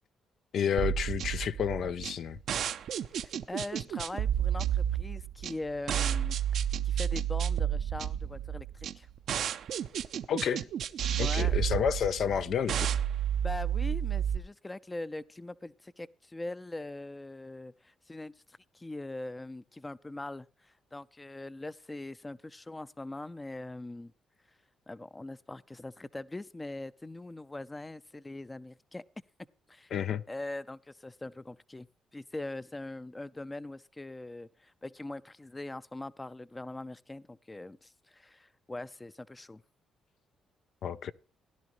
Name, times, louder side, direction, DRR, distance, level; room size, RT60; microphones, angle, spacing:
voice 1, 0.5-2.4 10.3-10.6 11.2-12.8 29.9-30.2 40.8-41.1, left 8 dB, 65° left, 0.6 m, -30 dB
sound 1, 0.8-14.4, right 9 dB, 70° right, 0.7 m, -31 dB
voice 2, 3.1-6.4 6.8-9.1 11.2-11.5 13.4-24.1 24.9-29.0 29.7-29.9 30.3-31.9 32.1-39.6, left 2 dB, 15° left, 0.6 m, -42 dB
17.0 x 11.0 x 3.1 m
cardioid pair, 90°, 0 cm